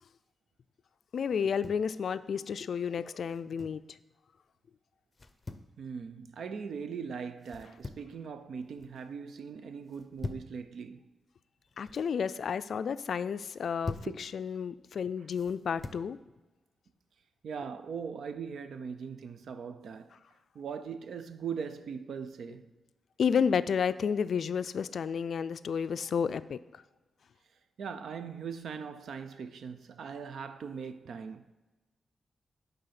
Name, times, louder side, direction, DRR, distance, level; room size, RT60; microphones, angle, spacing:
voice 1, 1.1-4.0 11.8-16.2 23.2-26.8, left 7 dB, 70° left, 0.3 m, -31 dB
sound 1, 1.3-1.9 3.2-3.9 5.1-5.7 7.4-8.2 8.6-9.0 9.9-10.6 11.6-12.1 13.4-14.2 15.3-16.1, left 3 dB, 30° left, 0.6 m, -43 dB
voice 2, 5.8-11.0 14.0-14.2 17.4-20.2 20.5-22.7 27.8-31.5, right 6 dB, 75° right, 0.5 m, -40 dB
10.5 x 3.9 x 5.8 m
cardioid pair, 105°, 0 cm